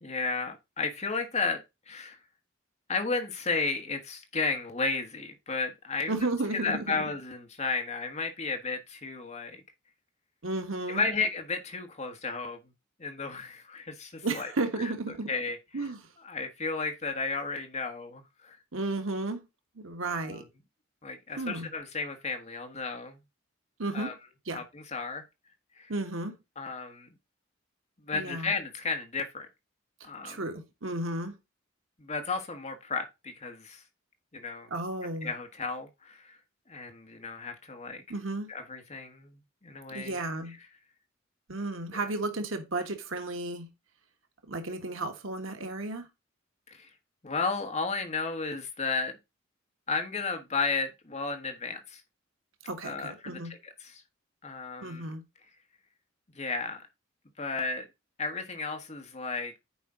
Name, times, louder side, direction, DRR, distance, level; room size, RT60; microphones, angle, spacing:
voice 1, 0.0-1.6 1.9-2.2 2.9-6.1 6.5-9.6 10.9-12.6 13.0-14.5 14.8-14.9 15.3-15.6 16.2-18.6 20.2-20.4 21.0-23.2 23.9-24.1 24.5-25.2 25.8-25.9 26.6-27.1 28.1-29.5 30.0-30.4 32.0-33.8 34.3-34.7 35.2-36.4 36.7-38.0 38.5-40.2 41.9-42.0 46.7-46.9 47.2-49.1 49.9-52.0 52.8-53.4 54.4-55.0 56.4-56.9 57.4-57.9 58.2-59.6, left 4 dB, 35° left, 1.4 m, -33 dB
voice 2, 6.1-7.1 10.4-11.0 14.2-15.3 15.7-16.1 18.7-19.5 19.7-20.4 21.4-21.7 23.8-24.1 24.4-24.6 25.9-26.4 28.1-28.5 30.0-31.3 34.7-35.3 38.1-38.5 39.9-40.6 41.5-43.7 44.5-46.1 52.7-53.5 54.8-55.2, right 2 dB, 80° right, 1.5 m, -33 dB
10.0 x 5.1 x 3.8 m
head